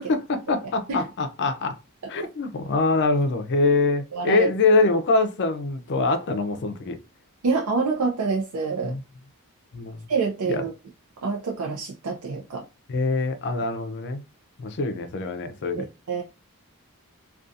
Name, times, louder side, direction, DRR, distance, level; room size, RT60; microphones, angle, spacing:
voice 1, 0.0-1.8 2.1-7.0 8.8-9.0 9.7-10.0 10.5-10.6 12.9-14.2 14.6-15.9, left 3 dB, 50° left, 0.4 m, -24 dB
voice 2, 4.1-4.5 7.4-9.0 10.1-10.7 11.2-12.6 15.8-16.2, right 4 dB, 85° right, 0.5 m, -26 dB
2.4 x 2.3 x 2.6 m
head